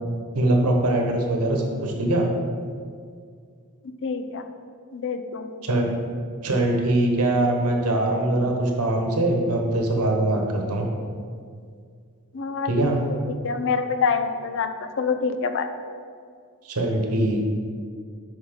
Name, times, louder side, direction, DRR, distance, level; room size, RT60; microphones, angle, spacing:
voice 1, 0.3-2.3 5.6-5.9 6.4-10.9 12.6-13.0 16.6-17.4, right 1 dB, 90° right, 1 dB, 1.1 m, -22 dB
voice 2, 3.8-4.5 4.9-5.7 12.3-15.7, left 5 dB, 55° left, 9 dB, 0.5 m, -27 dB
5.8 x 5.3 x 5.1 m, 2.1 s
head